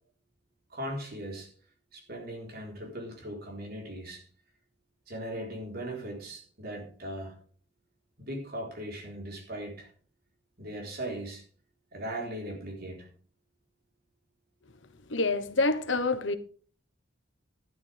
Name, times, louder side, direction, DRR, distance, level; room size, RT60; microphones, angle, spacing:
voice 1, 0.7-1.5 1.9-4.2 5.1-7.4 8.2-9.9 10.6-11.4 11.9-13.1, right 1 dB, 55° right, 4.0 m, -38 dB
voice 2, 15.1-16.4, left 3 dB, 70° left, 1.2 m, -27 dB
12.0 x 12.0 x 3.5 m
head